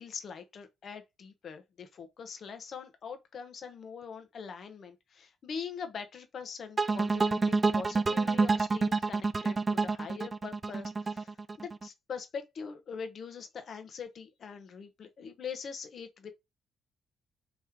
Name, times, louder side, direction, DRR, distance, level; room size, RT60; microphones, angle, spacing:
voice 1, 0.0-16.3, left 6 dB, 55° left, 0.9 m, -43 dB
sound 1, 6.8-11.9, right 4 dB, 25° right, 0.3 m, -28 dB
3.1 x 3.1 x 3.6 m
cardioid pair, 90°, 0 cm